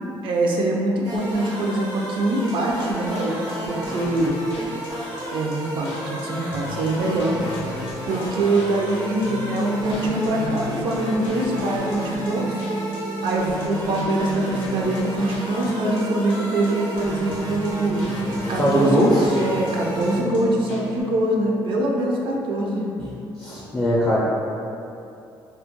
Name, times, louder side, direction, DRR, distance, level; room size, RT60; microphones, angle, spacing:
voice 1, 0.2-4.4 5.3-7.4 8.0-12.7 13.2-18.1 18.5-19.0 19.3-22.8, right 1 dB, 65° right, -1 dB, 0.4 m, -24 dB
sound 1, 1.0-20.2, equal, 85° right, 0.8 m, -32 dB
sound 2, 2.3-21.0, right 2 dB, 90° left, 0.4 m, -34 dB
voice 2, 18.6-19.3 23.4-24.2, equal, 20° left, -7 dB, 0.4 m, -20 dB
2.2 x 2.1 x 2.9 m, 2.6 s
cardioid pair, 80°, 9 cm